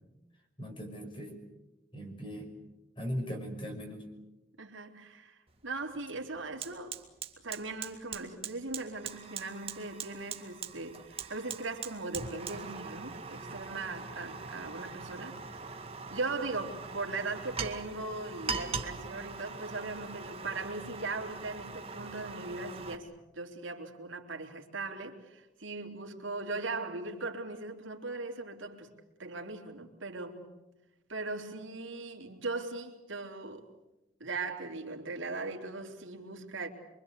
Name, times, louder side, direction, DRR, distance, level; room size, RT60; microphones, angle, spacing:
voice 1, 0.6-1.4 1.9-2.5 3.0-4.0, equal, 25° left, 6.0 m, -38 dB
voice 2, 4.6-6.9 7.4-28.9 29.2-30.5 31.1-33.7 34.2-36.7, right 3 dB, 80° right, 3.7 m, -39 dB
Fire, 5.5-5.6 5.9-23.0, right 5 dB, 30° right, 2.1 m, -42 dB
26.5 x 24.5 x 8.4 m
head